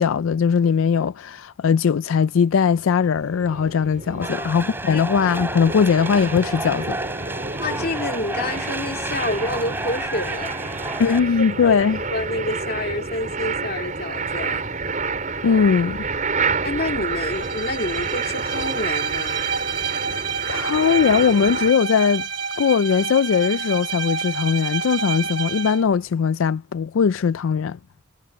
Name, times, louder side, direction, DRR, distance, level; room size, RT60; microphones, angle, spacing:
voice 1, 0.0-7.0 11.0-12.0 15.4-16.1 20.5-22.3 22.6-27.8, left 6 dB, 85° left, 0.4 m, -20 dB
sound 1, 2.8-21.7, right 4 dB, 40° right, 4.6 m, -29 dB
voice 2, 4.2-4.6 4.9-5.0 7.6-10.7 11.4-11.8 12.1-14.6 16.6-19.4, left 2 dB, 50° left, 2.1 m, -28 dB
sound 2, 4.2-11.2, right 2 dB, 10° right, 5.2 m, -31 dB
Bowed string instrument, 17.2-25.8, right 6 dB, 55° right, 2.7 m, -28 dB
head